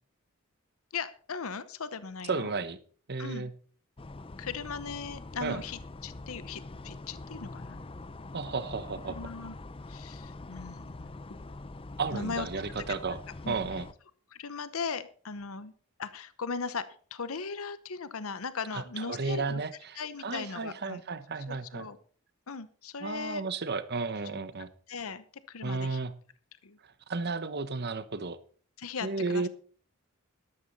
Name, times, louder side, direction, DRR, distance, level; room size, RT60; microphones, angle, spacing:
voice 1, 0.9-2.5 3.2-3.5 4.4-7.8 9.1-9.5 9.9-11.2 12.1-12.5 13.4-13.5 14.3-15.7 16.0-19.6 20.0-21.0 21.5-22.0 22.5-23.4 24.9-26.0 26.6-26.8 28.8-29.5, left 5 dB, 75° left, 14 dB, 0.9 m, -38 dB
voice 2, 2.3-2.8 3.1-3.5 5.4-5.6 8.3-9.3 12.0-13.2 13.5-13.9 18.7-21.9 23.0-24.7 25.6-26.1 27.1-28.4 29.0-29.5, right 4 dB, 50° right, 13 dB, 1.1 m, -33 dB
sound 1, 4.0-13.9, left 2 dB, 25° left, 0.6 m, -44 dB
12.5 x 12.0 x 4.1 m, 0.43 s
head